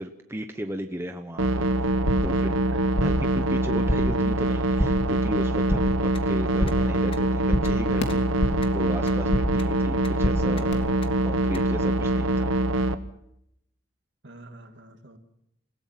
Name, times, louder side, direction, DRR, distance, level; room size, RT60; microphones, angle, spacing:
voice 1, 0.0-1.9 2.2-2.6 3.0-3.2 3.5-12.5, equal, 10° right, 5 dB, 0.9 m, -35 dB
sound 1, 1.4-13.0, right 1 dB, 80° right, 1.3 m, -24 dB
sound 2, 1.9-2.4 2.7-3.3 3.6-4.2 4.5-5.1 5.4-6.1 6.3-7.0 7.2-8.7 9.0-9.7 9.9-10.7, equal, 55° left, 3.3 m, -28 dB
voice 2, 2.7-3.5 14.2-15.2, right 1 dB, 55° right, 6 dB, 2.4 m, -39 dB
sound 3, 6.1-6.2 6.7-6.8 7.1-7.2 7.6-7.7 8.1-8.2 8.6-8.7 9.1-9.2 9.6-9.7 10.0-10.1 10.5-10.6 11.0-11.1 11.5-11.6 12.0-12.1, left 5 dB, 25° left, 1.5 m, -42 dB
28.0 x 17.0 x 5.9 m, 0.77 s
head